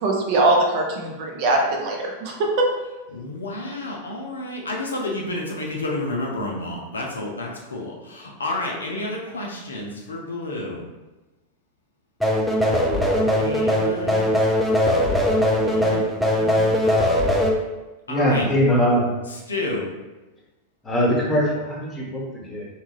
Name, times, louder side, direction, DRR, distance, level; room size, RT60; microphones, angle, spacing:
voice 1, 0.0-2.7, right 2 dB, 45° right, 0 dB, 0.5 m, -21 dB
voice 2, 3.1-10.8 13.4-14.3 15.6-16.7 18.1-18.5 19.5-19.9, left 2 dB, 75° left, -1 dB, 0.5 m, -30 dB
sound 1, 12.2-17.5, left 1 dB, ahead, 0.4 m, -20 dB
voice 3, 18.1-19.0 20.8-22.7, equal, 15° left, -4 dB, 0.9 m, -21 dB
2.8 x 2.3 x 2.9 m, 1.1 s
figure-of-eight pair, 90°, 0 cm